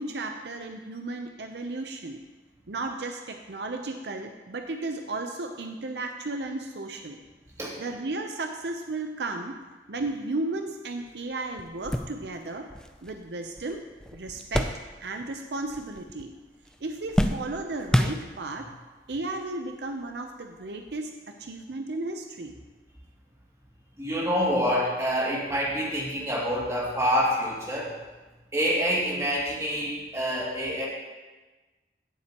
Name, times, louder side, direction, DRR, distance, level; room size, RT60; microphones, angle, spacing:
voice 1, 0.0-2.2 2.7-7.2 7.8-9.5 9.9-12.7 13.0-13.8 14.1-14.7 15.0-16.3 16.8-18.7 19.1-22.5, right 2 dB, 70° right, 4 dB, 0.7 m, -34 dB
sound 1, 11.1-11.2 11.6-15.4 15.6-16.4 16.7-18.7 19.5-19.6 20.9-21.0, equal, 5° left, 0.4 m, -30 dB
voice 2, 24.0-27.9 28.5-30.9, equal, 15° right, -5 dB, 2.4 m, -27 dB
16.5 x 7.5 x 3.0 m, 1.2 s
head